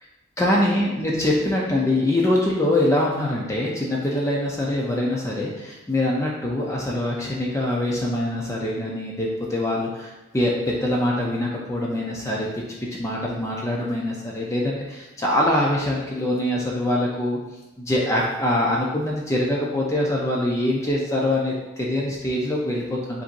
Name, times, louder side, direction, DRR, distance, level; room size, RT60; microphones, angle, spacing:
voice 1, 0.4-12.5 13.0-17.4 17.8-23.2, left 1 dB, 15° left, -3 dB, 0.5 m, -24 dB
7.5 x 2.7 x 2.6 m, 1.1 s
head